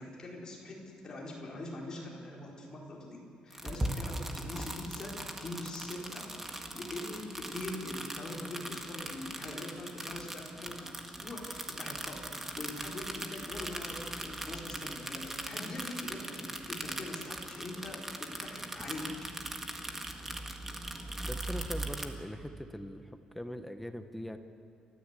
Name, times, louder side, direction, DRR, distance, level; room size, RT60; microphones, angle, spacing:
voice 1, 0.0-19.2, left 2 dB, 30° left, -2 dB, 4.5 m, -43 dB
sound 1, 3.5-22.1, right 1 dB, 10° right, 1.8 m, -40 dB
voice 2, 21.3-23.0 23.3-24.4, equal, 5° left, 8 dB, 1.0 m, -41 dB
29.5 x 14.0 x 8.3 m, 2.8 s
cardioid pair, 160°, 2 cm